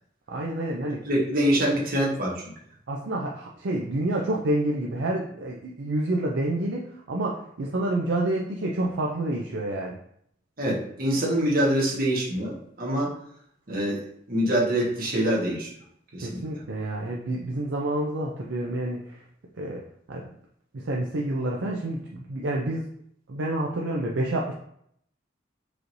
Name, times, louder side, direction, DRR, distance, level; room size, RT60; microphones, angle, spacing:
voice 1, 0.3-1.0 2.9-10.0 16.2-19.0 19.6-19.8 20.1-20.2 20.9-22.8 23.3-24.5, right 1 dB, 70° right, -2 dB, 0.5 m, -28 dB
voice 2, 1.0-2.5 10.6-13.1 13.7-15.7 16.1-16.6, right 1 dB, 50° right, -4 dB, 1.3 m, -25 dB
4.9 x 3.0 x 2.6 m, 0.69 s
head